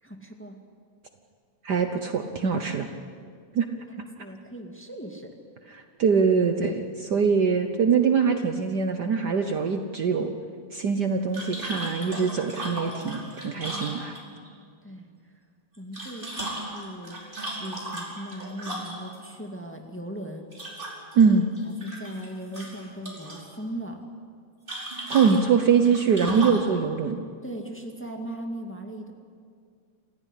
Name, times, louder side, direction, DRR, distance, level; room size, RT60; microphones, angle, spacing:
voice 1, 0.0-0.6 3.9-5.3 14.8-15.1 15.8-20.7 21.2-21.3 21.6-24.0 27.4-29.1, right 1 dB, 5° left, 3 dB, 1.4 m, -39 dB
voice 2, 1.6-2.9 3.5-3.7 5.7-10.3 10.7-14.2 21.1-21.4 25.1-27.2, right 6 dB, 85° right, 6 dB, 0.9 m, -23 dB
sound 1, 11.3-14.5 15.7-19.2 20.5-21.2 21.6-22.3 22.5-23.4 24.7-26.7, right 1 dB, 15° right, 5.1 m, -35 dB
28.0 x 16.0 x 10.0 m, 2.2 s
omnidirectional pair, 3.3 m